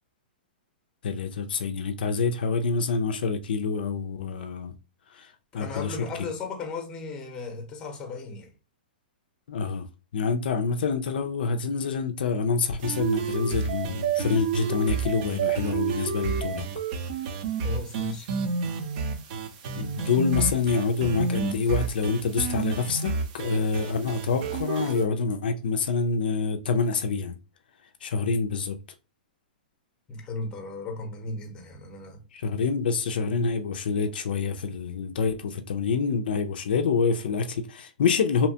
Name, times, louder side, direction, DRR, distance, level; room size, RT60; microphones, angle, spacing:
voice 1, 1.0-4.8 5.1-5.3 5.5-6.0 9.5-9.9 10.1-16.6 19.8-27.4 28.0-28.8 32.3-38.5, left 5 dB, 75° left, 0.4 m, -27 dB
voice 2, 5.5-8.5 17.6-18.3 30.1-32.2, left 3 dB, 15° left, 0.7 m, -36 dB
sound 1, 12.8-25.1, right 5 dB, 45° right, 0.5 m, -30 dB
2.8 x 2.1 x 2.7 m
hypercardioid pair, 155°, 5 cm